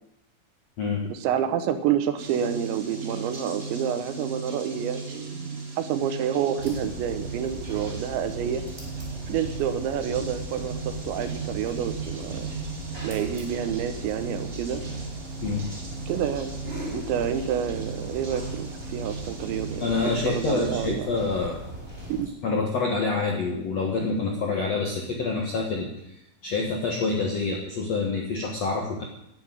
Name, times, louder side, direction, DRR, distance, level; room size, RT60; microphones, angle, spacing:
voice 1, 1.1-8.6 9.3-12.5 13.0-14.8 16.1-16.5 16.9-19.9 20.3-21.2 22.1-22.3, right 9 dB, 80° right, 10 dB, 3.2 m, -28 dB
sound 1, 2.2-20.9, right 4 dB, 55° right, 0.9 m, -37 dB
sound 2, 6.6-22.2, right 1 dB, 15° right, 4.3 m, -39 dB
voice 2, 19.8-21.6 22.4-25.9 26.4-29.0, left 4 dB, 65° left, 0 dB, 1.6 m, -27 dB
11.5 x 8.3 x 9.5 m, 0.82 s
omnidirectional pair, 5.3 m